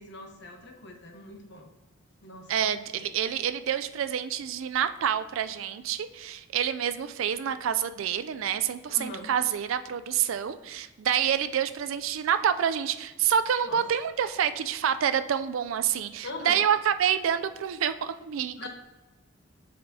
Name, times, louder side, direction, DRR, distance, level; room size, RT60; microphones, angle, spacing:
voice 1, 0.0-1.7 2.2-3.1 8.9-9.3 13.7-13.8 16.2-16.7 18.6-18.7, left 2 dB, 55° left, 3 dB, 1.0 m, -42 dB
voice 2, 2.5-18.7, right 8 dB, 75° right, 11 dB, 0.4 m, -27 dB
7.7 x 5.1 x 2.7 m, 1.2 s
head